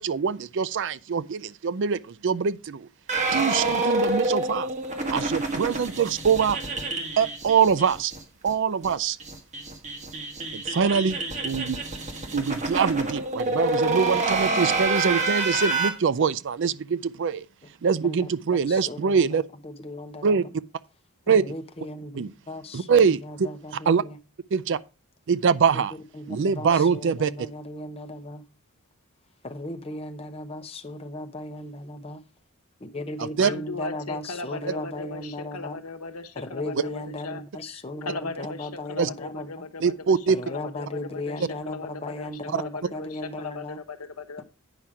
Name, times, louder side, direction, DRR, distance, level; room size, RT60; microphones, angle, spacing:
voice 1, 0.0-2.9 3.3-4.7 5.1-6.6 7.2-8.1 8.4-9.2 10.5-11.8 12.3-17.5 17.8-19.4 20.2-20.4 21.3-21.4 22.1-22.3 22.7-24.0 24.5-24.8 25.3-25.9 26.3-27.5 33.2-33.5 39.0-39.1 39.8-40.4, right 6 dB, 55° right, 0.4 m, -24 dB
sound 1, 3.1-8.2 8.5-8.6 8.8-8.9 9.2-15.9, right 2 dB, 35° right, 1.4 m, -27 dB
voice 2, 18.6-20.4 21.3-24.2 26.1-28.4 29.4-32.2 32.8-35.8 36.4-39.5 40.3-43.8, left 1 dB, 25° left, 0.9 m, -36 dB
voice 3, 33.4-42.3 42.6-44.4, left 3 dB, 85° left, 1.0 m, -38 dB
9.0 x 5.7 x 4.8 m
head